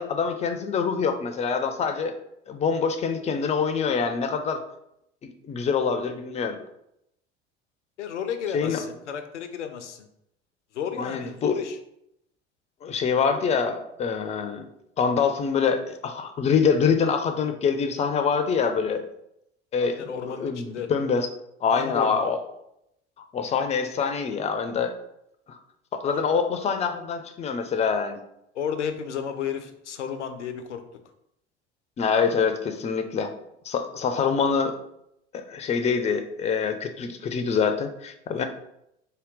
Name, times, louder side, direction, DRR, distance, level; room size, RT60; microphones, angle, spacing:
voice 1, 0.0-2.1 2.5-4.6 5.4-6.6 8.5-8.8 11.0-11.6 12.8-14.7 15.0-19.0 19.7-21.3 21.6-22.4 23.3-25.0 25.5-25.6 25.9-28.2 32.0-33.3 33.6-34.8 35.3-38.4, left 6 dB, 20° left, 7 dB, 0.4 m, -25 dB
voice 2, 8.0-10.1 10.7-11.8 19.8-20.9 21.7-22.3 26.1-26.2 28.5-30.8 38.4-38.5, left 7 dB, 85° left, 8 dB, 0.5 m, -33 dB
3.8 x 2.1 x 3.7 m, 0.79 s
figure-of-eight pair, 70°, 35 cm